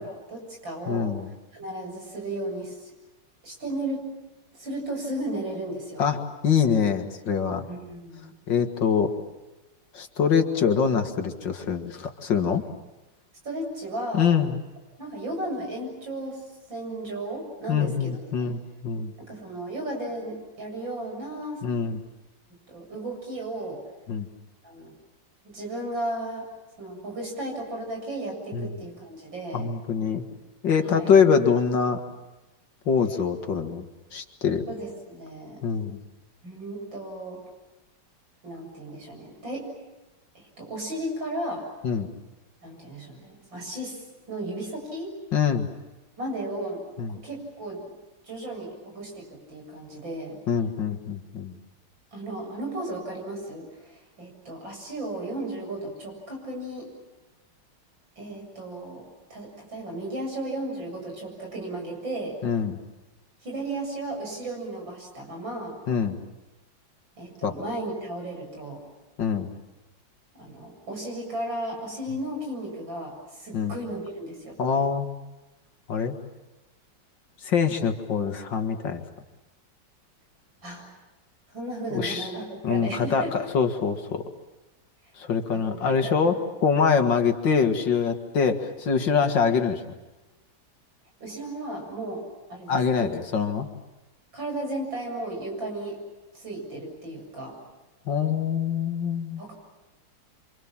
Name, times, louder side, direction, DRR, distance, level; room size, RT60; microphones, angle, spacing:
voice 1, 0.0-2.9 3.4-4.1 4.5-6.0 7.7-8.3 13.4-14.3 15.0-18.5 19.2-21.7 22.7-23.8 24.6-24.9 25.4-26.5 26.8-29.7 30.8-31.1 34.7-35.6 36.4-37.4 38.4-39.7 40.3-41.6 42.6-44.0 44.3-45.1 46.2-46.8 47.1-47.9 48.2-50.4 52.1-56.9 58.2-62.4 63.4-65.8 67.2-68.8 70.3-74.6 80.6-80.9 81.5-83.5 85.5-86.3 91.2-92.2 92.5-93.1 94.3-96.0 96.3-97.6 99.4-99.5, right 1 dB, 80° right, 1 dB, 8.2 m, -35 dB
voice 2, 0.9-1.3 6.0-7.6 8.5-9.1 9.9-12.6 14.1-14.6 17.7-19.1 21.6-22.0 24.1-24.3 28.5-28.7 29.5-30.2 30.6-32.0 32.9-33.8 34.1-34.6 35.6-36.0 41.8-42.1 45.3-45.7 47.0-47.2 50.5-51.6 62.4-62.8 65.9-66.1 67.4-67.6 69.2-69.5 73.5-73.7 74.6-75.1 75.9-76.2 77.4-79.0 81.9-82.3 82.6-84.2 85.2-89.9 92.7-93.7 98.1-99.4, left 6 dB, 75° left, 6 dB, 2.4 m, -24 dB
28.5 x 25.5 x 7.4 m, 1.1 s
omnidirectional pair, 2.0 m